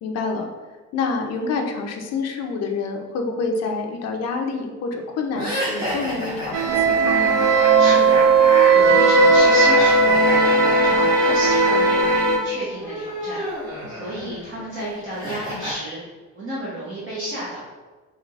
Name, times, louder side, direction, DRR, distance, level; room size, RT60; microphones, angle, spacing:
voice 1, 0.0-0.5 0.9-7.4 14.2-14.4, left 4 dB, 50° left, 3 dB, 0.5 m, -27 dB
sound 1, 5.3-12.1 12.4-15.7, equal, 10° right, 1.2 m, -31 dB
sound 2, 6.5-12.4, right 3 dB, 70° right, 0.6 m, -16 dB
voice 2, 7.8-8.3 8.7-13.4 13.9-16.0 16.3-17.6, right 1 dB, 35° right, -8 dB, 0.9 m, -32 dB
4.6 x 2.9 x 2.4 m, 1.4 s
cardioid pair, 165°, 33 cm